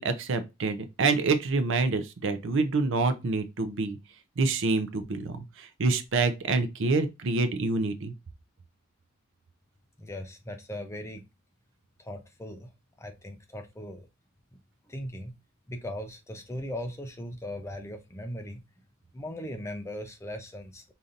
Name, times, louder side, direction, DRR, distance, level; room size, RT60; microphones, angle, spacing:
voice 1, 0.0-4.0 4.4-8.1, right 3 dB, 60° right, 0.5 m, -27 dB
voice 2, 10.0-11.2 12.0-12.7 13.0-14.1 14.9-15.3 15.7-18.6 19.1-20.8, left 1 dB, 15° left, 0.5 m, -38 dB
5.1 x 2.8 x 2.5 m
head